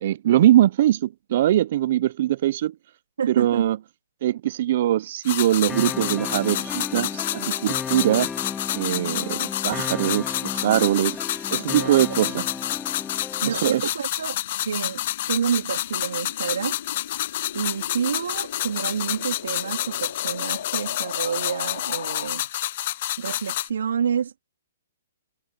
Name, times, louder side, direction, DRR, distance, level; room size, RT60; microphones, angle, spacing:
voice 1, 0.0-2.7 3.3-3.8 4.2-8.3 8.7-11.2 11.5-12.5 13.4-13.9, right 13 dB, 45° right, 0.5 m, -22 dB
voice 2, 3.2-3.7 11.8-12.4 13.4-14.4 14.6-16.8 17.5-22.5 23.2-24.4, right 7 dB, 75° right, 2.8 m, -29 dB
sound 1, 5.2-23.7, left 14 dB, 40° left, 0.5 m, -29 dB
sound 2, 5.7-13.7, left 5 dB, 10° left, 1.7 m, -34 dB
sound 3, 7.7-22.3, left 9 dB, 60° left, 3.0 m, -42 dB
hypercardioid pair, 160°, 0 cm